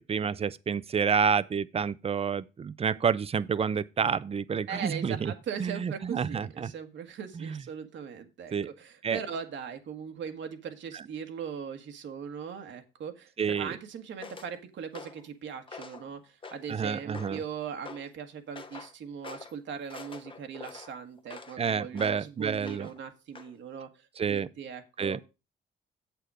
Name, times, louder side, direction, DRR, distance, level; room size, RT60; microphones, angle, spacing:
voice 1, 0.0-5.3 5.6-6.7 7.3-7.6 8.5-8.7 9.0-9.2 13.4-13.8 16.7-17.4 21.6-22.9 24.2-24.5 25.0-25.2, right 6 dB, 30° right, 0.5 m, -29 dB
voice 2, 4.7-25.3, right 7 dB, 70° right, 1.5 m, -40 dB
sound 1, 14.2-14.5 14.9-15.3 15.7-16.1 16.4-16.8 17.1-17.5 17.9-18.1 18.6-18.9 19.2-19.5 19.9-21.6 21.9-22.2 22.6-23.0 23.4-23.5, left 4 dB, 25° left, 0.9 m, -45 dB
7.9 x 6.9 x 4.8 m
cardioid pair, 90°, 20 cm